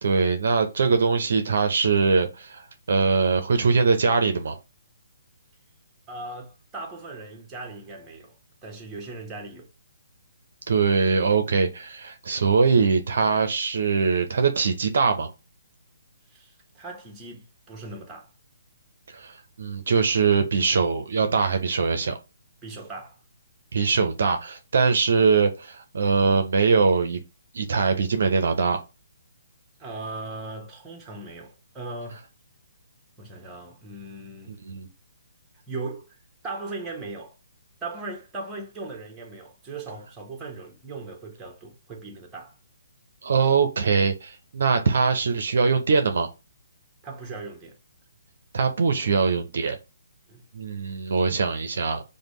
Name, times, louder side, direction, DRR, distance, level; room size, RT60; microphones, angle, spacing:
voice 1, 0.0-4.6 10.7-15.3 19.1-22.2 23.7-27.2 27.5-28.8 34.5-34.9 43.2-46.3 48.5-49.8 50.5-52.0, right 5 dB, 60° right, 0.6 m, -22 dB
voice 2, 6.1-9.7 16.3-18.3 22.6-23.2 29.8-32.2 33.2-34.5 35.7-36.1 36.4-37.3 37.8-42.6 47.0-47.8 50.3-50.4, right 3 dB, 15° right, 1.0 m, -38 dB
5.0 x 2.1 x 3.1 m
figure-of-eight pair, 140°, 0 cm